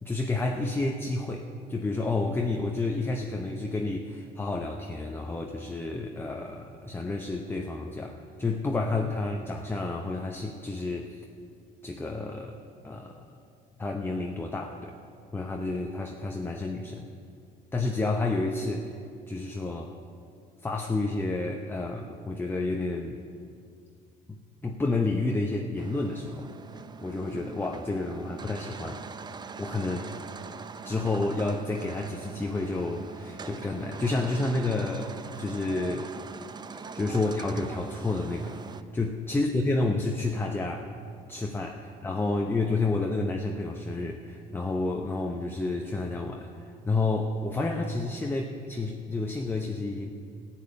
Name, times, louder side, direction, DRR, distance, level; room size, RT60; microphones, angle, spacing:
voice 1, 0.0-11.2 11.8-12.6 12.8-13.3 13.8-15.0 15.3-17.1 17.7-19.0 19.3-20.0 20.6-23.2 24.3-26.5 27.0-29.0 29.6-30.1 30.8-36.1 36.9-38.6 38.9-40.9 41.3-50.1, left 2 dB, 15° left, 3 dB, 0.8 m, -30 dB
sound 1, 25.8-38.8, right 5 dB, 25° right, 0.5 m, -42 dB
13.5 x 7.5 x 9.8 m, 2.3 s
cardioid pair, 110°, 17 cm